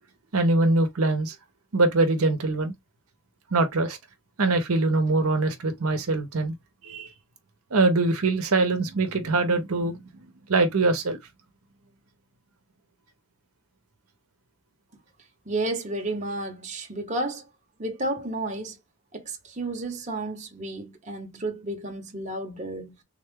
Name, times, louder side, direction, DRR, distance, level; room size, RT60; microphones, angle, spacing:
voice 1, 0.3-1.3 1.7-2.7 3.5-4.0 4.4-6.5 6.8-7.1 7.7-10.0 10.5-11.2, right 3 dB, 80° right, 0.8 m, -23 dB
voice 2, 15.5-17.4 17.8-18.8 19.1-22.9, right 2 dB, 35° right, 0.8 m, -32 dB
3.7 x 2.2 x 3.5 m
head